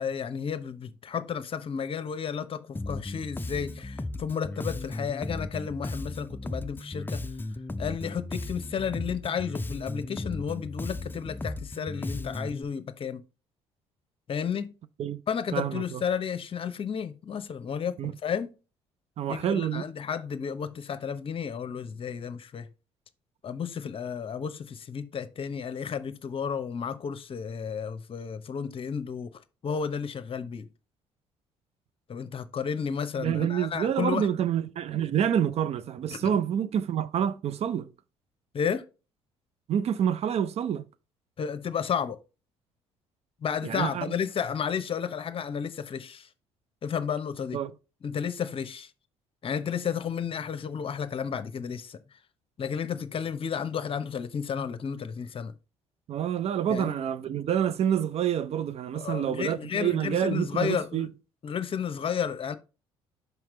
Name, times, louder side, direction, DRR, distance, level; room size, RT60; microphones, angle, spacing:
voice 1, 0.0-7.2 7.8-13.2 14.3-14.7 15.3-18.5 19.3-22.7 23.4-29.3 29.6-30.7 32.1-34.3 36.2-36.3 38.5-38.8 41.4-42.2 43.4-46.3 46.8-47.6 48.0-48.9 49.4-52.0 52.6-55.5 56.7-56.9 58.9-61.1 61.4-62.6, left 7 dB, 40° left, 0.8 m, -32 dB
Bass guitar, 2.8-12.6, left 2 dB, 15° left, 0.5 m, -36 dB
voice 2, 15.5-16.0 18.0-18.1 19.2-19.8 33.2-37.9 39.7-40.9 43.6-44.2 47.5-47.7 56.1-61.1, right 9 dB, 45° right, 0.5 m, -28 dB
5.8 x 5.5 x 3.1 m
hypercardioid pair, 50°, 14 cm